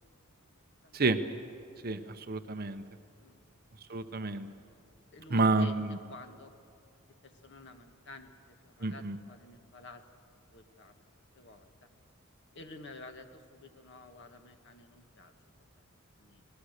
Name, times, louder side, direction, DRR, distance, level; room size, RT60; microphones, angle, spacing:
voice 1, 1.8-2.8 3.9-4.5 5.3-6.0 8.8-9.2, right 3 dB, 45° right, 9 dB, 0.9 m, -29 dB
voice 2, 5.1-6.5 7.2-10.0 10.5-10.9 11.3-11.7 12.5-15.3 16.2-16.4, left 2 dB, 55° left, 6 dB, 1.6 m, -51 dB
29.5 x 20.0 x 6.6 m, 2.5 s
head